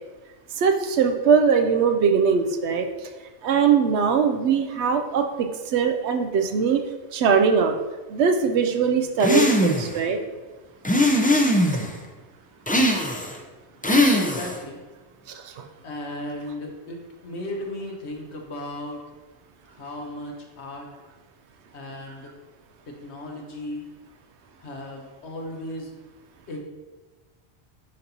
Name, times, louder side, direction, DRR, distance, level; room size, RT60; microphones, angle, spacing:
voice 1, 0.6-2.9 3.4-5.3 5.7-6.8 7.1-7.7 8.1-10.2 15.4-15.6, right 6 dB, 80° right, 4 dB, 0.8 m, -21 dB
sound 1, 9.2-10.0 10.8-11.9 12.7-13.4 13.8-14.6, left 1 dB, 10° left, 0.4 m, -20 dB
voice 2, 14.1-14.8 15.8-19.0 19.7-20.9 21.7-22.3 22.9-23.9 24.6-25.9 26.5-26.6, left 1 dB, 75° left, 1 dB, 1.4 m, -36 dB
10.5 x 4.0 x 2.8 m, 1.2 s
omnidirectional pair, 1.1 m